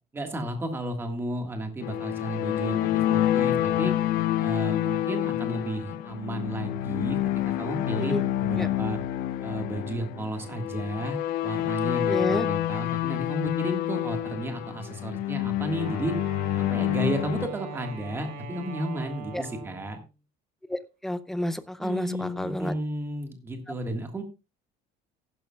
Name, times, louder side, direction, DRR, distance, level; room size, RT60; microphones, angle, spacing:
voice 1, 0.1-3.9 4.4-9.0 9.4-16.1 16.6-20.0 21.8-24.2, right 1 dB, 15° right, 5 dB, 1.7 m, -33 dB
sound 1, 1.8-17.5, left 13 dB, 60° left, 0.7 m, -28 dB
voice 2, 12.1-12.5 19.3-19.4 20.7-22.7, left 1 dB, ahead, 12 dB, 0.5 m, -30 dB
Wind instrument woodwind instrument, 15.7-20.0, right 3 dB, 65° right, 2.9 m, -40 dB
15.0 x 11.5 x 2.3 m, 0.30 s
cardioid pair, 180°, 17 cm